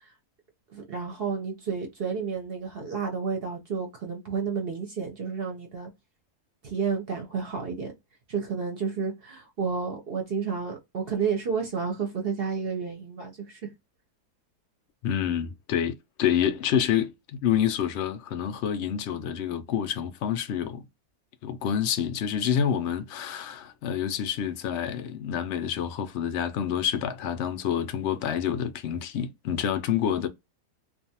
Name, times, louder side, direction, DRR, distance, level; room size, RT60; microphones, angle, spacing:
voice 1, 0.7-5.9 6.6-7.9 8.3-13.7, right 5 dB, 50° right, 0.8 m, -31 dB
voice 2, 15.0-20.8 21.4-30.3, left 9 dB, 75° left, 0.6 m, -28 dB
2.5 x 2.3 x 2.7 m
omnidirectional pair, 1.7 m